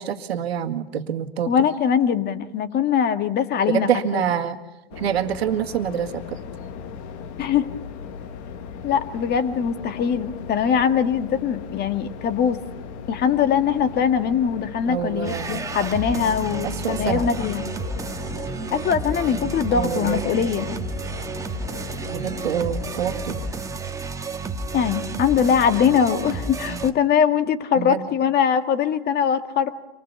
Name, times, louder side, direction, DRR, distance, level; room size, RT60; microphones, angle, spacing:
voice 1, 0.0-1.5 3.7-4.6 5.0-6.4 14.9-15.7 16.6-17.3 19.7-20.5 22.1-23.4 27.8-28.1, right 9 dB, 85° right, 7 dB, 2.0 m, -26 dB
voice 2, 1.5-4.3 7.4-7.7 8.8-12.6 13.1-17.7 18.7-20.8 24.7-29.7, left 7 dB, 30° left, 9 dB, 1.8 m, -22 dB
sound 1, 4.9-23.5, left 6 dB, 50° left, 1.9 m, -38 dB
sound 2, 15.2-26.9, right 3 dB, 10° right, 1.6 m, -31 dB
26.0 x 20.5 x 7.0 m, 0.99 s
hypercardioid pair, 115°, 31 cm